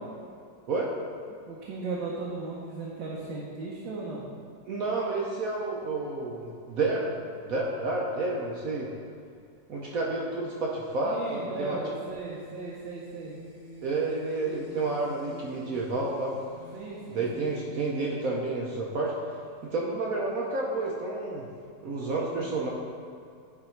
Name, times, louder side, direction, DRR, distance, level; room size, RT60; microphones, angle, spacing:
voice 1, 1.5-4.2 11.0-13.3 16.7-17.7 22.3-22.6, right 3 dB, 85° right, -5 dB, 1.6 m, -37 dB
voice 2, 4.7-7.1 7.5-8.9 9.7-11.8 13.8-16.4 17.1-19.1 19.6-21.5 21.8-22.7, right 3 dB, 60° right, -3 dB, 1.0 m, -30 dB
sound 1, 12.1-18.8, equal, 30° left, 1.5 m, -50 dB
10.0 x 3.5 x 4.4 m, 2.4 s
omnidirectional pair, 2.0 m